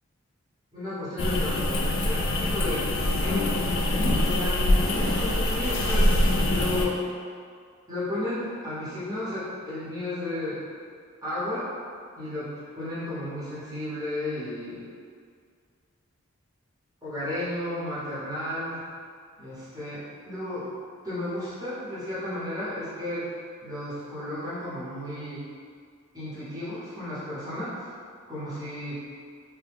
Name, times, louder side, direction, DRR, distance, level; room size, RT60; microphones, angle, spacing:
voice 1, 0.7-2.9 3.2-3.4 4.2-7.0 7.9-10.7 11.2-11.7 12.2-14.9 17.0-18.8 19.4-20.7 21.0-23.3 23.6-25.5 26.1-27.9 28.3-29.0, left 1 dB, 15° right, -11 dB, 0.9 m, -33 dB
sound 1, 1.2-6.9, left 1 dB, 60° left, 0.3 m, -24 dB
2.9 x 2.1 x 3.4 m, 2.1 s
head